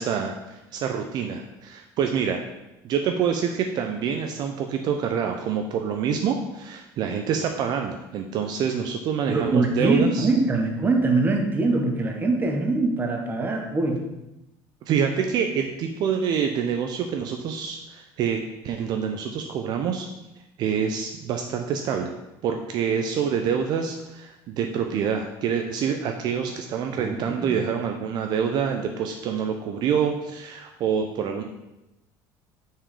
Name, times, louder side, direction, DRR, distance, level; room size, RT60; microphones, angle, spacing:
voice 1, 0.0-2.5 2.8-10.3 14.8-20.1 20.6-22.1 22.4-31.4, right 7 dB, 55° right, 4 dB, 0.6 m, -26 dB
voice 2, 9.3-14.0 27.0-27.5, right 3 dB, 20° right, 3 dB, 1.0 m, -23 dB
6.1 x 4.7 x 4.8 m, 0.96 s
cardioid pair, 130°, 9 cm